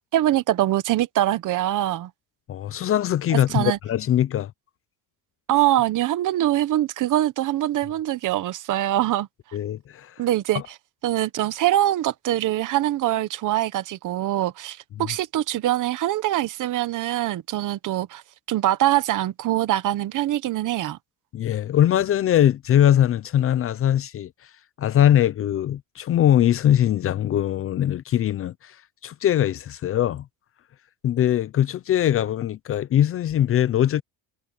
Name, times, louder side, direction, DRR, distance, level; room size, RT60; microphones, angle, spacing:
voice 1, 0.1-2.1 3.5-3.8 5.5-9.3 10.2-10.6 11.0-18.2 18.5-21.0, right 14 dB, 55° right, 1.1 m, -23 dB
voice 2, 2.5-4.5 9.5-10.1 15.0-15.1 21.3-24.3 24.8-28.7 29.0-30.2 31.0-34.0, left 11 dB, 35° left, 0.5 m, -21 dB
cardioid pair, 165°, 38 cm